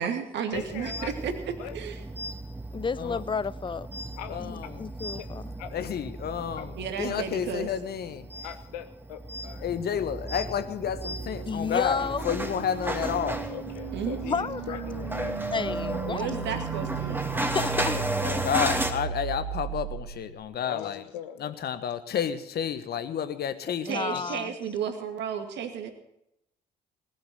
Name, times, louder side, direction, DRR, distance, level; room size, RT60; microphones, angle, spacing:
voice 1, 0.0-2.0 6.8-7.7 13.9-14.2 16.1-17.5 23.8-25.9, right 7 dB, 60° right, 2.3 m, -33 dB
voice 2, 0.5-1.1 1.6-1.8 4.2-4.4 5.2-5.3 5.6-5.7 6.5-6.7 7.1-7.2 8.4-9.7 11.8-11.9 13.5-16.4 17.9-18.5 20.6-21.6, left 10 dB, 75° left, 1.3 m, -41 dB
sound 1, 0.5-18.9, right 1 dB, 10° right, 2.5 m, -35 dB
voice 3, 2.7-3.9 4.4-5.4 11.5-12.2 14.3-14.8 15.5-16.6 17.4-18.0 23.9-24.5, left 5 dB, 25° left, 0.6 m, -31 dB
voice 4, 4.3-4.9 5.7-8.3 9.6-13.4 18.2-21.0 21.4-24.2, left 8 dB, 50° left, 1.4 m, -31 dB
sound 2, 10.5-20.6, right 10 dB, 80° right, 0.8 m, -37 dB
19.5 x 7.3 x 9.2 m
figure-of-eight pair, 50°, 21 cm